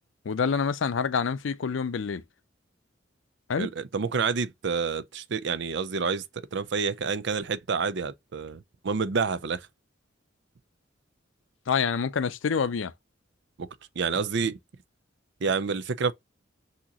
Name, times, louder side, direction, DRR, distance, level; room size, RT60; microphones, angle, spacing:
voice 1, 0.3-2.2 3.5-3.7 11.7-12.9, left 6 dB, 75° left, 0.5 m, -27 dB
voice 2, 3.6-6.2 6.5-9.7 13.6-13.7 14.0-14.6 15.4-16.1, right 5 dB, 60° right, 0.5 m, -28 dB
6.1 x 2.9 x 2.9 m
head